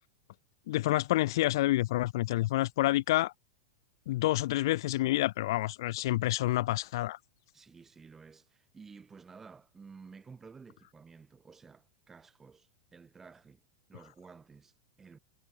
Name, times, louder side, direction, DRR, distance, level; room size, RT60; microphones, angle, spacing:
voice 1, 0.7-3.3 4.1-7.2, left 16 dB, 65° left, 0.3 m, -28 dB
voice 2, 7.5-13.6 13.9-15.2, right 5 dB, 15° right, 6.1 m, -53 dB
supercardioid pair, 140°, 2 cm